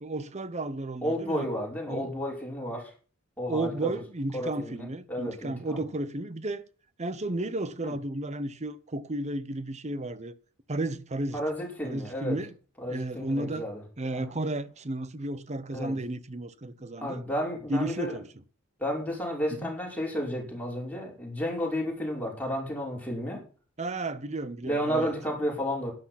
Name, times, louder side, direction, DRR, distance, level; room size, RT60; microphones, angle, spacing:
voice 1, 0.0-1.5 1.9-2.1 3.5-6.6 7.0-10.3 10.7-11.4 11.8-12.5 12.9-13.6 14.0-17.2 17.7-18.2 19.6-19.7 23.8-25.1, right 2 dB, 35° right, 0.9 m, -33 dB
voice 2, 1.0-2.9 3.4-4.0 4.3-5.8 7.8-7.9 11.3-12.4 12.8-13.8 14.1-14.3 15.7-16.0 17.0-18.1 18.8-23.4 24.6-25.9, equal, 10° left, 5.6 m, -32 dB
12.0 x 10.5 x 5.9 m
head